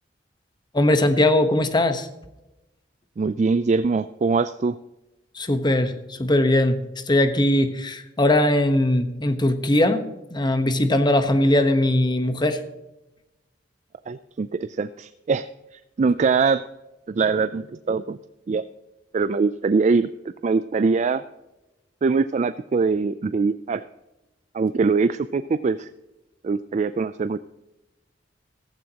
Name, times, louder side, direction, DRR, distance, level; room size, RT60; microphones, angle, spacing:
voice 1, 0.7-2.1 5.3-10.0 10.3-12.6, left 1 dB, 25° left, 9 dB, 1.0 m, -20 dB
voice 2, 3.2-4.8 14.1-16.6 17.1-18.2 18.5-18.6 19.1-20.1 20.4-21.2 22.0-23.8 24.5-25.9 26.4-27.4, right 4 dB, 40° right, 12 dB, 0.3 m, -22 dB
15.0 x 14.5 x 2.9 m, 1.0 s
head